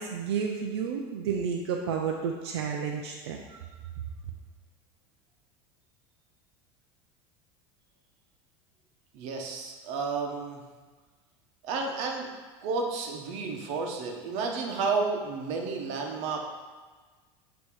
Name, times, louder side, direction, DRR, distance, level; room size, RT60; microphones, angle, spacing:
voice 1, 0.0-3.6, right 6 dB, 90° right, 1 dB, 0.6 m, -31 dB
voice 2, 9.1-10.6 11.6-12.3 12.6-16.4, right 4 dB, 60° right, 2 dB, 1.1 m, -31 dB
8.2 x 3.0 x 4.7 m, 1.4 s
supercardioid pair, 120°, 13 cm